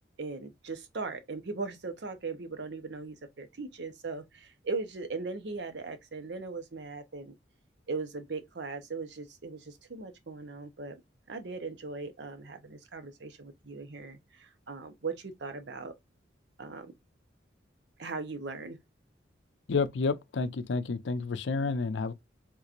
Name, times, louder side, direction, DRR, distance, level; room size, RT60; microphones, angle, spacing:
voice 1, 0.2-7.3 7.9-11.0 11.3-15.9 16.6-16.9 18.0-18.8, right 4 dB, 70° right, 0.7 m, -39 dB
voice 2, 19.7-22.1, left 4 dB, 80° left, 0.5 m, -30 dB
3.6 x 2.9 x 2.4 m
head